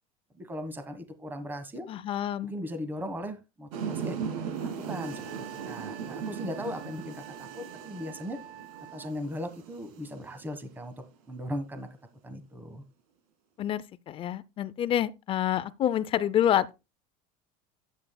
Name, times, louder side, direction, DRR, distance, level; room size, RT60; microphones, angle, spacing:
voice 1, 0.3-1.9 2.4-4.2 4.8-8.4 8.9-11.9 12.2-12.8, equal, 10° right, 1.3 m, -38 dB
voice 2, 1.9-2.5 13.6-16.7, left 11 dB, 30° left, 0.4 m, -27 dB
sound 1, 3.7-10.7, right 6 dB, 90° right, 1.8 m, -38 dB
Wind instrument woodwind instrument, 4.9-9.2, right 12 dB, 50° right, 1.3 m, -48 dB
12.0 x 8.5 x 2.2 m
cardioid pair, 150°, 18 cm